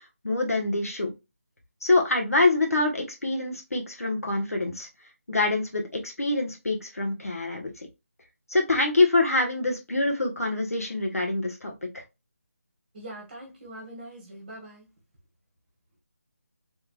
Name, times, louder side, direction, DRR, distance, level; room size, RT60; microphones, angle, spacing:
voice 1, 0.2-1.1 1.8-4.9 5.3-7.9 8.5-11.7, left 2 dB, 75° left, 1.4 m, -25 dB
voice 2, 12.9-14.9, right 1 dB, 30° right, 1.2 m, -42 dB
3.4 x 3.2 x 2.3 m
figure-of-eight pair, 160°, 8 cm